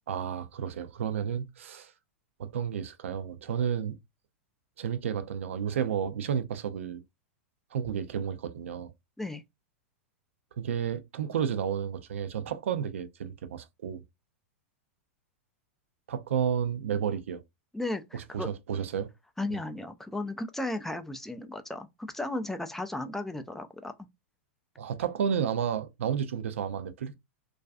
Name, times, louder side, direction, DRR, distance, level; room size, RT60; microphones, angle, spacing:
voice 1, 0.1-1.9 2.4-4.0 4.8-7.0 7.7-8.9 10.6-14.0 16.1-17.4 18.1-19.1 24.8-27.1, right 8 dB, 75° right, 0.4 m, -31 dB
voice 2, 17.7-18.5 19.4-23.9, left 2 dB, 5° left, 0.3 m, -35 dB
2.4 x 2.2 x 2.4 m
hypercardioid pair, 105°, 7 cm